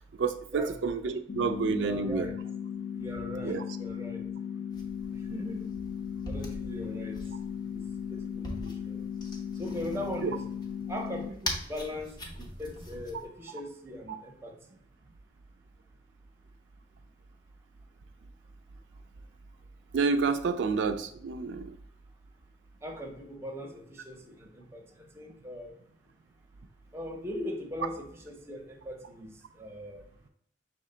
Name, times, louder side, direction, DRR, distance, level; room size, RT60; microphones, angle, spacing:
voice 1, 0.2-2.3 3.4-3.6 10.2-10.3 14.1-14.2 19.9-21.7, right 5 dB, 80° right, 7 dB, 0.4 m, -29 dB
sound 1, 1.3-11.3, left 8 dB, 55° left, 0.3 m, -37 dB
voice 2, 1.8-2.4 3.0-4.2 5.1-5.7 6.3-7.2 7.7-7.8 8.1-9.1 9.6-10.4 10.9-14.8 22.8-25.8 26.9-30.0, left 1 dB, 15° right, 1 dB, 0.7 m, -40 dB
sound 2, 4.7-13.2, equal, 20° left, 0.7 m, -42 dB
5.7 x 2.1 x 3.7 m, 0.69 s
head